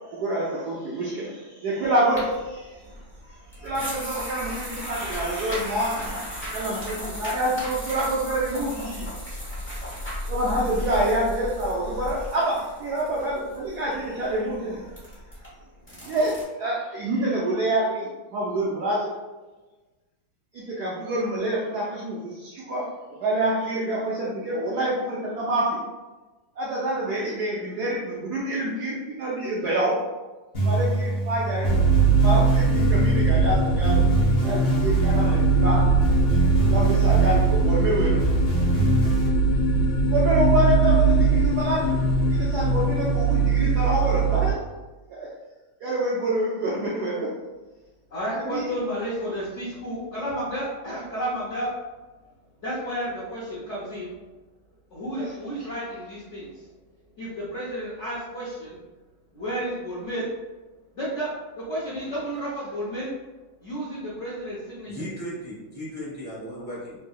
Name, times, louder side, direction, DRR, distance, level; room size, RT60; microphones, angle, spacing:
voice 1, 0.1-2.8 3.5-9.1 10.3-14.9 16.1-19.1 20.5-25.8 26.6-30.0 30.6-31.8 32.2-34.0 34.4-35.9 36.7-38.2 40.1-42.0 42.4-44.6 45.1-45.3 45.8-47.3 48.3-48.7 55.2-55.3 55.6-55.7, right 1 dB, 75° right, -5 dB, 0.9 m, -27 dB
sound 1, 2.1-16.4, equal, 10° left, 0.7 m, -36 dB
sound 2, 30.5-39.3, right 1 dB, 40° left, 0.9 m, -26 dB
sound 3, 31.6-44.5, right 4 dB, 85° left, 1.5 m, -21 dB
voice 2, 48.1-51.7 52.6-54.1 54.9-56.7 57.2-58.8 59.3-60.3 60.9-63.1 63.6-65.0, equal, 70° left, -8 dB, 0.7 m, -32 dB
voice 3, 64.8-67.0, equal, 45° right, -9 dB, 0.4 m, -36 dB
3.9 x 2.6 x 2.3 m, 1.2 s
omnidirectional pair, 2.3 m